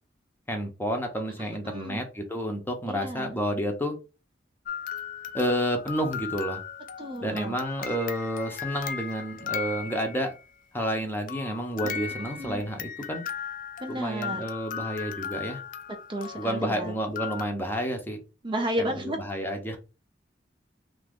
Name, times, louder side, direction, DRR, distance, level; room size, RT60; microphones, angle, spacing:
voice 1, 0.5-4.0 5.3-6.6 7.2-10.3 10.7-13.2 13.9-15.6 16.4-18.2 18.8-19.8, equal, 10° left, 0.7 m, -30 dB
voice 2, 1.6-2.0 2.9-3.3 7.0-7.6 12.0-12.6 13.8-14.4 16.1-17.0 18.4-19.2, equal, 25° right, 0.5 m, -32 dB
sound 1, 4.7-10.4 11.3-17.4, left 8 dB, 50° left, 0.4 m, -37 dB
2.8 x 2.5 x 3.5 m
head